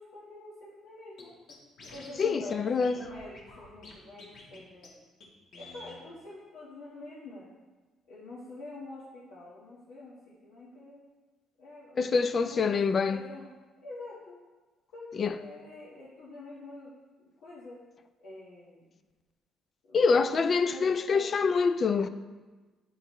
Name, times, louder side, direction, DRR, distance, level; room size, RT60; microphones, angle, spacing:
voice 1, 0.0-1.3 1.9-4.9 5.5-7.5 8.1-11.0 11.6-12.7 13.1-13.5 13.8-14.4 14.9-16.9 17.2-17.8 18.2-18.9 19.8-21.4, left 2 dB, 85° left, 1.4 m, -46 dB
Scratching (performance technique), 1.2-1.3 1.5-2.2 2.5-2.6 2.8-4.6 4.8-4.9 5.2-5.3 5.5-6.0, left 2 dB, 70° left, 1.4 m, -48 dB
voice 2, 2.2-3.0 12.0-13.2 15.1-15.4 19.9-22.1, left 5 dB, 40° left, 0.3 m, -25 dB
9.3 x 4.0 x 3.0 m
cardioid pair, 100°, 0 cm